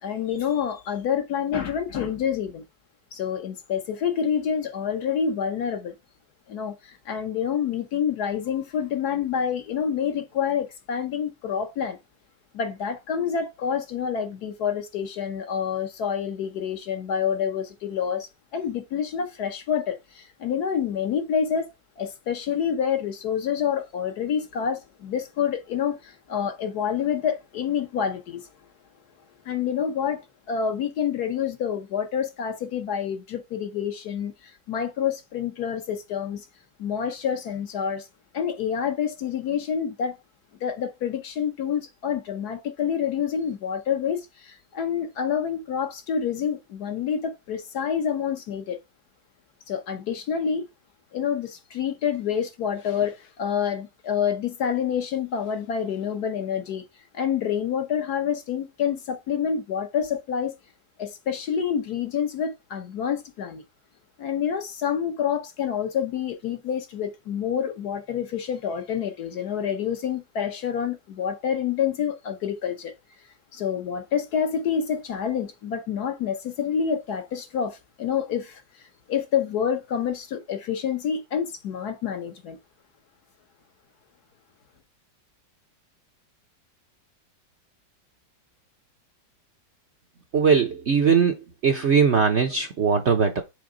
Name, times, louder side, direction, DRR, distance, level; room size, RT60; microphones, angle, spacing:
voice 1, 0.0-2.6 3.1-6.0 6.5-12.0 12.5-21.7 22.0-28.5 29.4-36.4 36.8-38.1 38.3-40.2 40.6-48.8 49.7-50.6 51.1-56.8 57.1-60.5 61.0-63.6 64.2-72.9 73.5-82.6, left 7 dB, 60° left, 1.4 m, -28 dB
voice 2, 90.3-91.4 91.6-93.4, right 6 dB, 55° right, 0.8 m, -20 dB
6.7 x 3.5 x 5.0 m
omnidirectional pair, 2.0 m